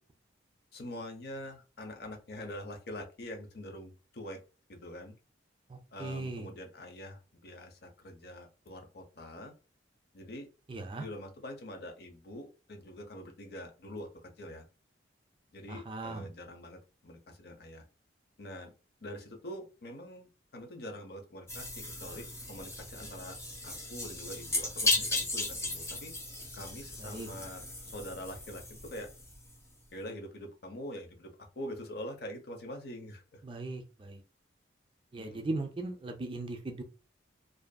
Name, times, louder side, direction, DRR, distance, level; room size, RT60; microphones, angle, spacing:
voice 1, 0.7-4.4 4.7-5.2 5.9-9.5 10.1-10.5 11.0-14.6 15.5-17.8 18.4-18.7 19.0-23.4 23.6-26.2 26.5-27.6 27.9-29.1 29.9-33.4 35.2-35.5, left 1 dB, 55° left, 4 dB, 0.6 m, -44 dB
voice 2, 5.7-6.5 10.7-11.0 15.7-16.3 27.0-27.3 33.5-34.2 35.1-36.8, right 2 dB, 25° right, 4 dB, 0.4 m, -38 dB
sound 1, 21.5-29.6, left 2 dB, 15° left, 0.6 m, -36 dB
2.5 x 2.4 x 2.2 m, 0.33 s
head